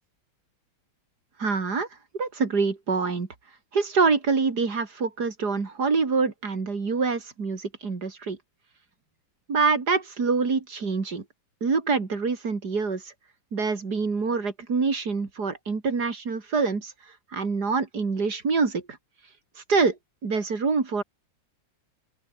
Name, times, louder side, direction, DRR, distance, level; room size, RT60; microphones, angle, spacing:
voice 1, 1.4-1.9 2.2-3.3 3.7-8.4 9.5-11.2 11.6-13.1 13.5-16.9 17.3-19.0 19.7-21.0, right 4 dB, 55° right, 3.3 m, -25 dB
open air
omnidirectional pair, 2.1 m